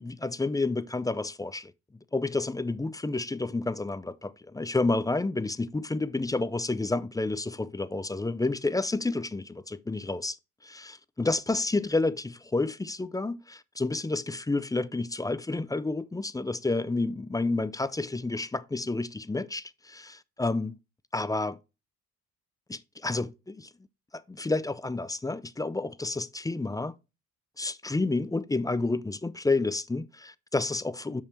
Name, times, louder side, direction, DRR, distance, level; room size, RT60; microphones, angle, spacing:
voice 1, 0.0-1.7 2.1-10.4 10.6-20.8 21.1-21.6 22.7-23.7 24.1-26.9 27.6-31.2, left 3 dB, 10° left, 0.5 m, -30 dB
6.3 x 5.5 x 4.4 m
cardioid pair, 90°, 30 cm